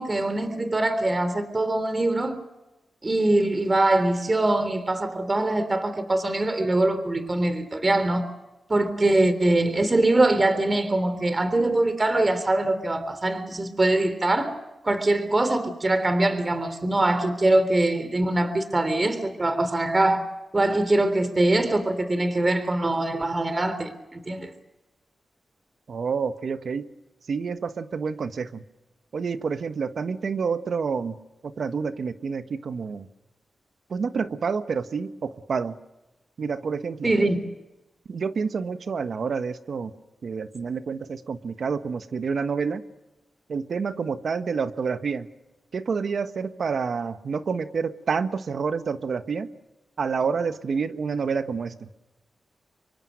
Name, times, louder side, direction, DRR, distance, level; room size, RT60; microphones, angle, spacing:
voice 1, 0.0-2.4 3.0-8.3 8.7-14.6 14.8-24.5 37.0-37.4, right 2 dB, 35° right, 3.4 m, -23 dB
voice 2, 25.9-26.9 27.3-28.6 29.1-31.1 31.4-33.1 33.9-35.7 36.4-37.1 38.1-39.9 40.2-42.8 43.5-45.3 45.7-49.5 50.0-51.9, right 5 dB, 70° right, 1.4 m, -28 dB
26.5 x 23.5 x 6.4 m
cardioid pair, 55°, 0 cm